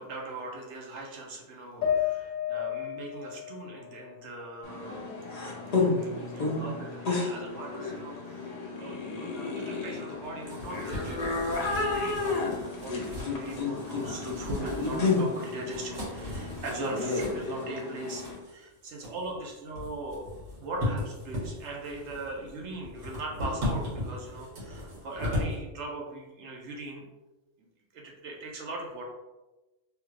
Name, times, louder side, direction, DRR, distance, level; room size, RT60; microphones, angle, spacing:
voice 1, 0.0-5.1 5.7-8.5 8.8-9.0 9.5-27.1 27.6-27.7 27.9-29.0, right 2 dB, 65° right, -1 dB, 1.0 m, -40 dB
sound 1, 1.8-5.2 5.6-6.6, left 9 dB, 75° left, 1.0 m, -34 dB
sound 2, 4.6-18.4, left 3 dB, 45° left, 0.6 m, -32 dB
sound 3, 10.2-25.6, left 1 dB, 80° right, 1.8 m, -37 dB
3.4 x 2.3 x 3.1 m, 1.1 s
omnidirectional pair, 1.3 m